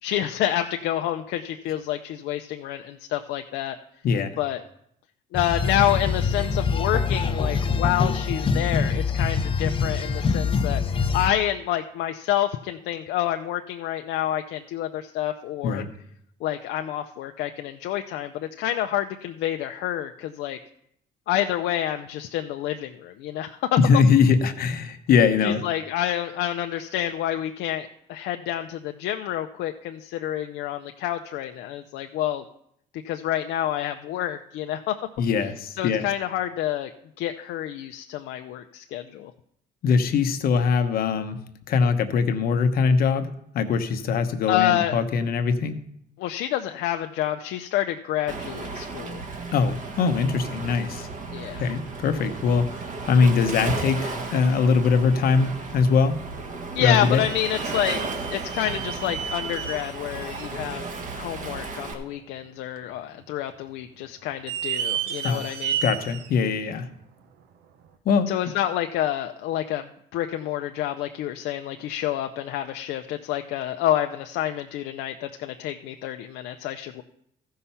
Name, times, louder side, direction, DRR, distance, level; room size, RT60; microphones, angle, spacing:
voice 1, 0.0-3.8 4.4-4.6 5.3-15.8 16.4-20.6 21.3-23.8 25.4-32.4 33.0-35.0 35.8-36.9 37.2-39.3 44.5-44.9 46.2-49.2 51.3-51.7 56.7-58.0 58.3-65.8 68.3-77.0, left 12 dB, 80° left, 5 dB, 0.6 m, -28 dB
voice 2, 4.0-4.4 15.6-15.9 23.8-25.6 35.2-36.0 39.8-41.4 41.7-43.3 43.5-45.8 49.5-51.1 51.6-52.7 53.1-56.2 56.8-57.2 65.2-65.4 65.8-66.9 68.0-68.3, left 5 dB, 60° left, 8 dB, 1.0 m, -22 dB
sound 1, 5.3-11.3, left 5 dB, 30° left, 0.7 m, -24 dB
Waves surf, 48.3-61.9, right 3 dB, 50° right, 1.7 m, -34 dB
sound 2, 56.5-56.6 57.2-60.6 61.1-61.2 61.8-61.9 62.8-63.2 63.5-63.6 64.3-66.3 66.8-66.9 67.8-67.9, right 9 dB, 75° right, 1.0 m, -32 dB
14.0 x 5.6 x 5.6 m, 0.73 s
cardioid pair, 110°, 17 cm